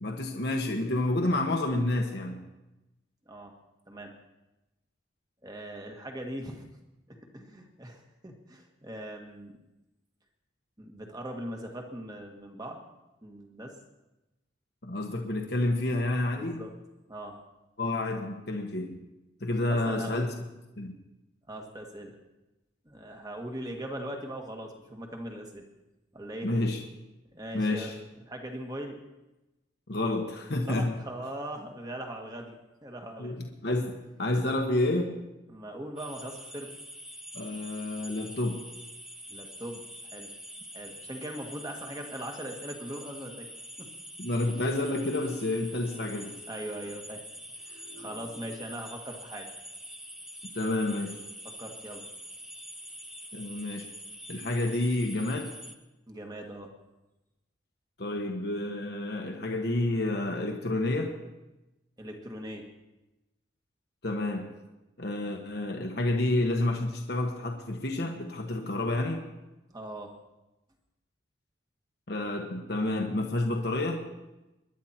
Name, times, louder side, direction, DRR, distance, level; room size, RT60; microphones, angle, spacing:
voice 1, 0.0-2.4 14.8-16.6 17.8-19.0 19.4-20.3 20.8-21.0 26.4-26.8 27.5-27.9 29.9-30.9 33.2-35.2 37.3-38.7 44.2-46.3 50.4-51.2 53.3-53.9 54.3-55.5 58.0-61.1 64.0-64.5 65.0-69.2 72.1-74.0, left 2 dB, 55° left, 2 dB, 1.3 m, -29 dB
voice 2, 5.4-6.6 7.1-9.5 10.8-12.8 13.2-13.7 16.4-16.7 17.1-17.4 19.6-20.3 21.5-22.2 22.9-25.6 26.1-26.5 27.3-27.9 28.2-29.0 30.6-33.4 35.5-36.7 39.3-39.8 40.1-40.3 40.7-43.5 43.8-43.9 46.5-47.2 47.6-49.5 51.6-52.1 56.1-56.7 62.0-62.7 69.7-70.1, right 1 dB, 20° right, 2 dB, 1.7 m, -40 dB
sound 1, 36.0-55.7, equal, ahead, 0.8 m, -45 dB
22.0 x 10.5 x 4.4 m, 1.0 s
head